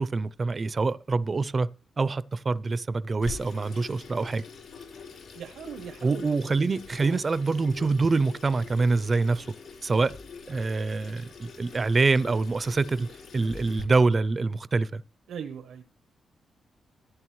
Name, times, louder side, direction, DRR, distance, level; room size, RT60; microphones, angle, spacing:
voice 1, 0.0-1.7 2.0-4.4 6.0-9.5 9.8-10.1 10.5-13.1 13.3-15.0, right 3 dB, 25° right, 0.4 m, -25 dB
Water tap faucet / Sink (filling or washing), 3.2-13.8, left 5 dB, 65° left, 3.6 m, -44 dB
voice 2, 5.3-6.3 7.0-7.2 15.3-15.8, right 7 dB, 85° right, 0.8 m, -39 dB
14.5 x 9.0 x 3.1 m
wide cardioid pair, 155°, 0 cm